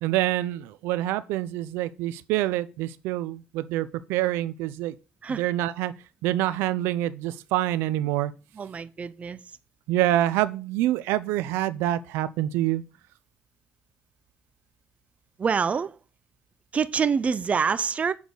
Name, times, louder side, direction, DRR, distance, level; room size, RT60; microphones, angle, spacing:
voice 1, 0.0-4.9 5.4-5.9 6.2-8.3 9.9-12.8, right 14 dB, 90° right, 0.5 m, -26 dB
voice 2, 8.5-9.4 15.4-16.0 16.7-18.1, right 6 dB, 35° right, 0.6 m, -26 dB
7.1 x 3.9 x 6.3 m
cardioid pair, 85°, 4 cm